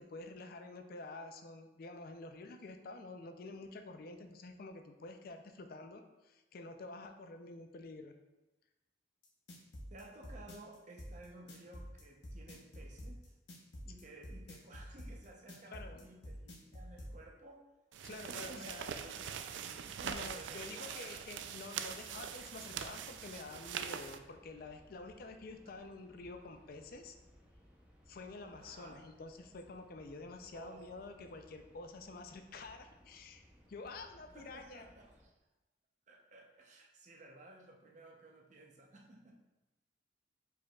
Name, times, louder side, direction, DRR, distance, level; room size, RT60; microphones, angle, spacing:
voice 1, 0.0-8.1 15.7-16.1 18.0-18.9 20.0-27.2 28.1-33.4 33.7-34.9, left 3 dB, 55° left, 6 dB, 0.4 m, -49 dB
sound 1, 9.2-17.1, equal, 70° left, 0.9 m, -48 dB
voice 2, 9.9-13.3 13.8-17.6 18.1-19.3 19.8-21.5 28.6-29.0 30.5-30.8 34.3-35.2 36.1-39.3, right 2 dB, 40° right, 0 dB, 0.7 m, -55 dB
sound 2, 17.9-24.2, right 8 dB, 80° right, 0.3 m, -43 dB
sound 3, 22.0-35.3, equal, 10° right, 0.6 m, -64 dB
4.8 x 4.6 x 2.3 m, 1.0 s
head